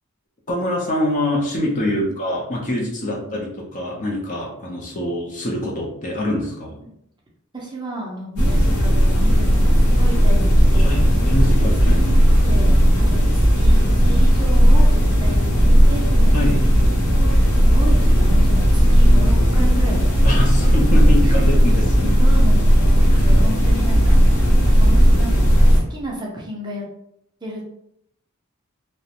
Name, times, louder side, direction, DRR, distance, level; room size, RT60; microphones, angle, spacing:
voice 1, 0.5-6.8 10.8-12.0 16.3-16.7 20.2-22.1 23.1-23.3, left 1 dB, 35° left, -2 dB, 0.5 m, -25 dB
voice 2, 3.0-3.4 6.8-7.0 7.5-11.0 11.9-16.3 17.1-17.3 17.7-20.7 21.2-21.4 22.2-24.2 24.8-26.8 27.4-27.7, equal, 20° right, -3 dB, 0.5 m, -33 dB
sound 1, 8.4-25.8, equal, 80° left, 0.7 m, -15 dB
2.4 x 2.1 x 2.8 m, 0.75 s
head